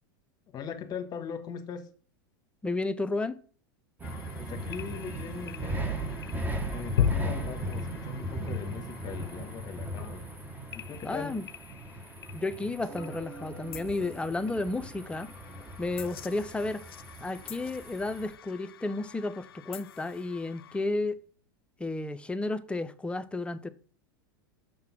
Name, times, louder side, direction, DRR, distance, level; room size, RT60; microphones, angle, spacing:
voice 1, 0.5-1.9 4.4-6.1 6.7-10.2 10.7-11.3, left 7 dB, 35° left, 1.2 m, -40 dB
voice 2, 2.6-3.4 11.0-11.4 12.3-15.3 15.8-16.8 17.2-21.2 21.8-23.7, left 2 dB, 10° left, 0.5 m, -32 dB
sound 1, 4.0-20.8, left 9 dB, 85° left, 0.4 m, -40 dB
sound 2, 4.0-18.3, right 1 dB, 15° right, 1.1 m, -38 dB
sound 3, 12.8-17.8 18.6-18.7 19.0-19.1, right 3 dB, 65° right, 1.2 m, -49 dB
6.5 x 3.7 x 5.9 m
hypercardioid pair, 100°, 12 cm